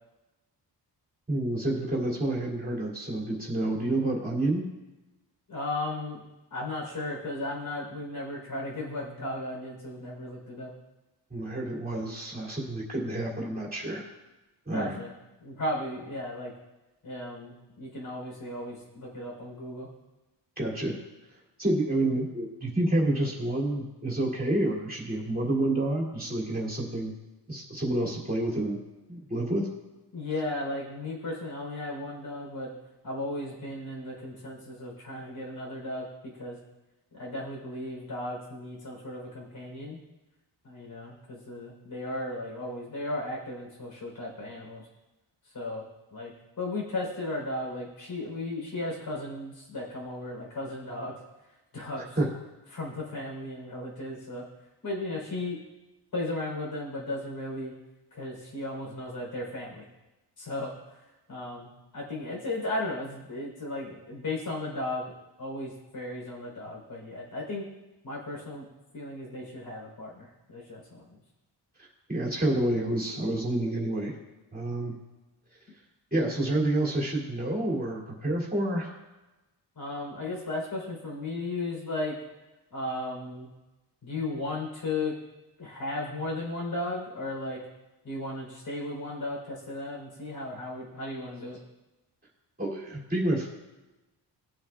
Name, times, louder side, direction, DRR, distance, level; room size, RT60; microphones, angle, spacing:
voice 1, 1.3-4.6 11.3-14.0 14.7-15.0 20.6-21.0 21.6-27.1 27.5-28.8 29.1-29.7 52.2-52.3 72.1-74.1 74.5-75.0 76.1-78.9 92.6-93.5, right 1 dB, 20° right, -3 dB, 2.6 m, -28 dB
voice 2, 5.5-6.2 6.5-10.7 14.7-15.1 15.4-16.5 17.0-19.9 30.1-32.7 33.0-36.6 37.1-40.0 40.6-44.8 45.4-45.8 46.1-51.1 51.7-52.2 52.7-54.5 54.8-55.6 56.1-57.7 58.1-59.8 60.4-65.1 65.4-67.7 68.0-68.7 68.9-71.2 79.8-82.2 82.7-83.5 84.0-85.1 85.6-87.6 88.0-91.6, left 2 dB, 55° left, -2 dB, 4.0 m, -35 dB
19.0 x 7.8 x 2.4 m, 1.1 s
wide cardioid pair, 115°, 42 cm